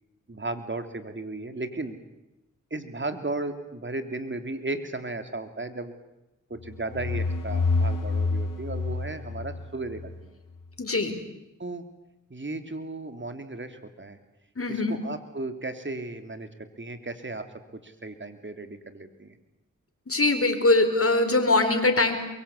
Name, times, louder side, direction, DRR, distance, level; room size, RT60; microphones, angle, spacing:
voice 1, 0.3-2.0 2.7-5.9 6.5-10.3 11.6-11.8 12.3-14.2 14.7-17.4 17.8-19.4, right 2 dB, 35° right, 9 dB, 3.1 m, -35 dB
sound 1, 6.6-10.3, left 3 dB, 80° left, 3.1 m, -28 dB
voice 2, 10.8-11.2 14.6-15.0 20.1-22.2, left 2 dB, 45° left, 6 dB, 4.6 m, -22 dB
23.5 x 23.0 x 8.5 m, 0.95 s
cardioid pair, 45°, 31 cm